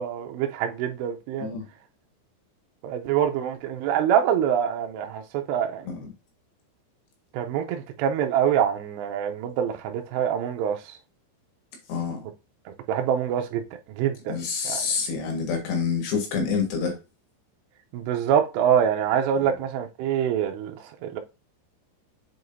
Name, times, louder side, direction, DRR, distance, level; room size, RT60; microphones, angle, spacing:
voice 1, 0.0-1.5 2.8-5.9 7.3-11.0 12.9-13.6 14.0-14.4 14.6-14.8 17.9-20.8 21.0-21.2, right 9 dB, 80° right, 2.6 m, -25 dB
voice 2, 11.9-12.2 14.3-17.0, left 5 dB, 70° left, 3.5 m, -27 dB
7.7 x 4.7 x 2.6 m
omnidirectional pair, 5.3 m